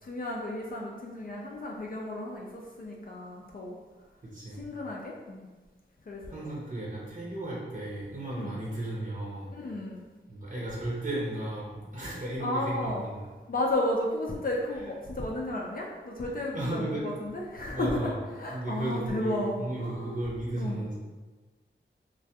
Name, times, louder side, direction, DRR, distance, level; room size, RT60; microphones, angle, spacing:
voice 1, 0.0-3.8 4.5-5.5 6.1-6.5 8.4-8.6 9.5-10.0 12.4-13.0 13.5-20.2 20.6-20.8, left 1 dB, 45° left, -2 dB, 0.4 m, -33 dB
voice 2, 4.2-4.6 6.3-9.5 10.3-13.2 16.5-17.2 17.7-18.1 18.5-20.9, right 1 dB, 40° right, -6 dB, 0.7 m, -34 dB
2.2 x 2.2 x 2.7 m, 1.3 s
cardioid pair, 45°, 20 cm